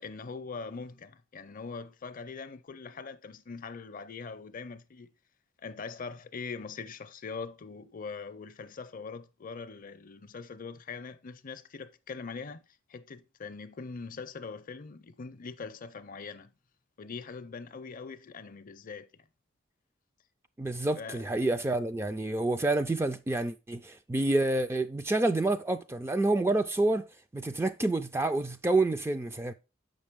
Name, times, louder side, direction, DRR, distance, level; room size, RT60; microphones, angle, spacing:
voice 1, 0.0-5.1 5.6-12.6 12.9-16.5 17.0-19.3 20.9-21.2, left 4 dB, 45° left, 0.5 m, -42 dB
voice 2, 20.6-27.0 27.3-29.5, right 2 dB, 15° right, 0.3 m, -28 dB
7.1 x 5.3 x 3.5 m
head